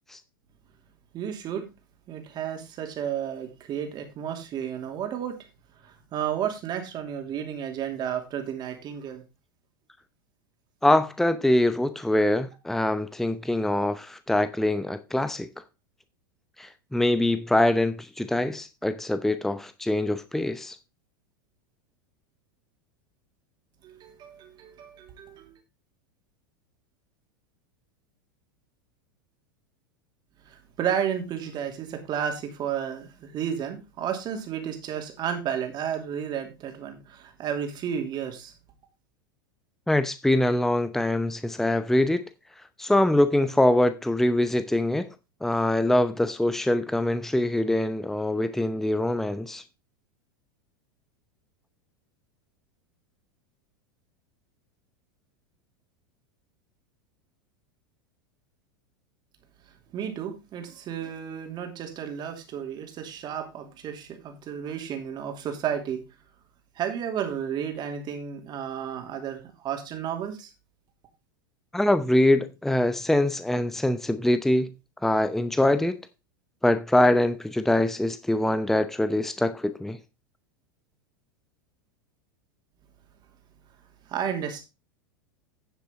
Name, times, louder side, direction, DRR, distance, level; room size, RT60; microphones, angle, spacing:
voice 1, 1.1-1.7 2.1-5.4 5.8-9.2 23.8-25.6 30.5-38.5 59.9-66.0 66.8-70.5 84.1-84.6, right 8 dB, 40° right, 2.7 m, -32 dB
voice 2, 10.8-15.5 16.6-20.8 39.9-42.3 42.8-45.1 45.4-49.6 71.7-74.7 75.0-76.0 76.6-80.0, left 1 dB, 5° left, 0.7 m, -24 dB
11.0 x 7.2 x 3.6 m
hypercardioid pair, 95°, 11 cm